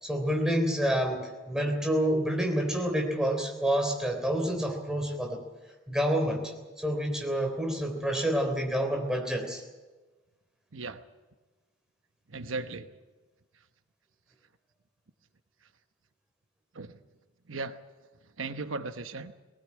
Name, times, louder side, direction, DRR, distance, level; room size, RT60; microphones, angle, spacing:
voice 1, 0.0-5.4 5.9-6.4 6.8-9.6, equal, 5° right, 2 dB, 3.6 m, -28 dB
voice 2, 12.3-12.9 16.7-16.9 17.5-17.8 18.4-19.3, right 3 dB, 90° right, 9 dB, 1.0 m, -36 dB
19.0 x 19.0 x 8.6 m, 1.2 s
head